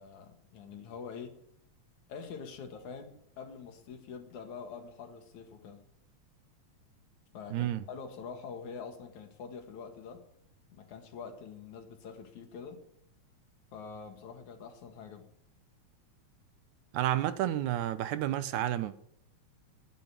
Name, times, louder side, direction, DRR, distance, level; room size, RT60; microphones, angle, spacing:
voice 1, 0.0-1.4 2.1-5.9 7.3-10.2 10.7-12.8 13.7-15.3, left 6 dB, 80° left, 3.2 m, -45 dB
voice 2, 7.5-7.8 16.9-19.1, right 12 dB, 80° right, 2.2 m, -31 dB
11.0 x 10.5 x 9.0 m
omnidirectional pair, 3.4 m